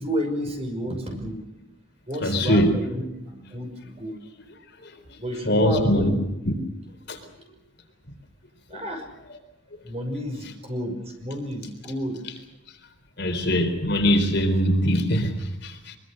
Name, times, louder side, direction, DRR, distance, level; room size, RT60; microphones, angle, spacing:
voice 1, 0.0-1.4 2.1-4.2 5.2-6.2 8.7-9.1 9.8-12.2, equal, 30° right, 5.8 m, -31 dB
voice 2, 2.2-2.8 4.8-5.2 5.5-6.1 6.4-6.5 7.1-7.2 13.2-16.0, equal, 50° left, 4.0 m, -22 dB
23.5 x 23.5 x 6.6 m
head